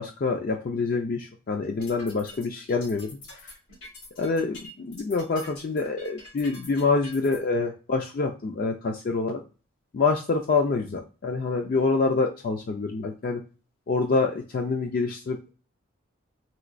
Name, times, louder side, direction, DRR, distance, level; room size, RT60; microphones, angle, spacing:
voice 1, 0.0-3.5 4.2-9.4 9.9-13.4 13.9-15.5, left 4 dB, 40° left, 3 dB, 0.3 m, -26 dB
sound 1, 1.6-7.4, left 2 dB, 80° left, 1.6 m, -45 dB
3.1 x 2.9 x 2.5 m, 0.34 s
head